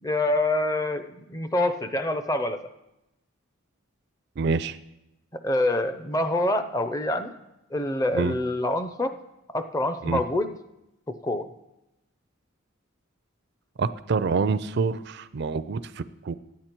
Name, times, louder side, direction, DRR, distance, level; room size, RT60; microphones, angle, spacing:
voice 1, 0.0-2.6 5.4-7.3 7.7-9.1 9.5-10.6 11.1-11.5, left 1 dB, 15° left, 9 dB, 0.5 m, -26 dB
voice 2, 4.4-4.8 8.1-8.3 10.0-10.2 13.8-16.3, right 4 dB, 50° right, 14 dB, 0.4 m, -26 dB
13.5 x 9.5 x 4.4 m, 0.92 s
head